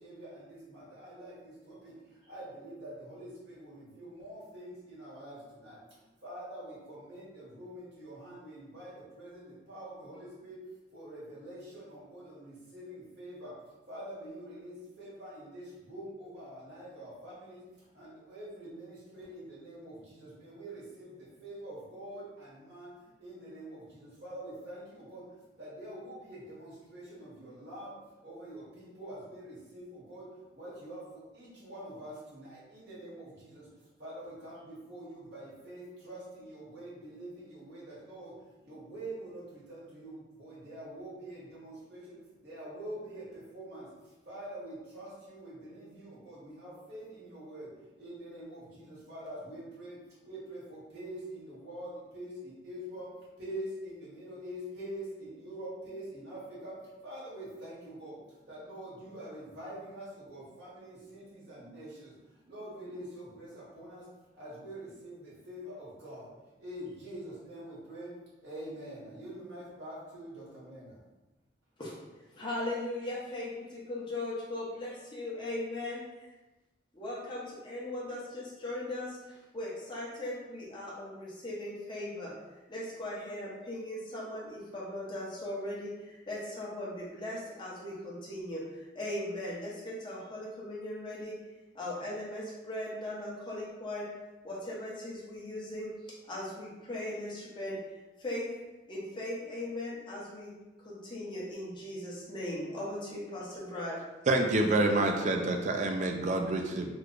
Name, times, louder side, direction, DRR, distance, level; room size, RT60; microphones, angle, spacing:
voice 1, 0.0-10.6 10.9-64.1 64.3-71.0, right 1 dB, 65° right, -9 dB, 1.4 m, -45 dB
voice 2, 71.8-76.3 76.9-82.3 82.7-91.4 91.7-94.1 94.4-97.8 98.2-98.5 98.9-100.5 100.8-104.0, left 1 dB, 25° left, -6 dB, 0.8 m, -38 dB
voice 3, 104.3-106.9, right 2 dB, 40° right, 4 dB, 0.4 m, -27 dB
3.1 x 2.2 x 3.8 m, 1.1 s
head